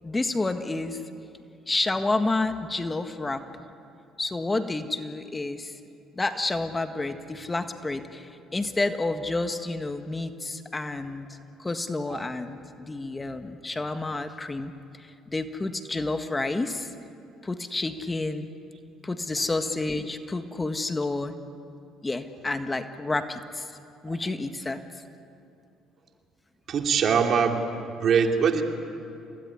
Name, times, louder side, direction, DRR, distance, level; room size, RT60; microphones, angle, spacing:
voice 1, 0.0-1.0 1.7-3.4 4.2-5.8 6.2-11.3 11.6-14.7 15.0-16.9 17.4-18.5 19.0-21.3 22.0-23.7 24.0-24.8, left 2 dB, 20° left, 8 dB, 1.6 m, -29 dB
voice 2, 26.7-27.6 28.0-28.6, right 6 dB, 55° right, 3 dB, 2.8 m, -22 dB
28.0 x 19.5 x 9.8 m, 2.6 s
supercardioid pair, 75°, 0 cm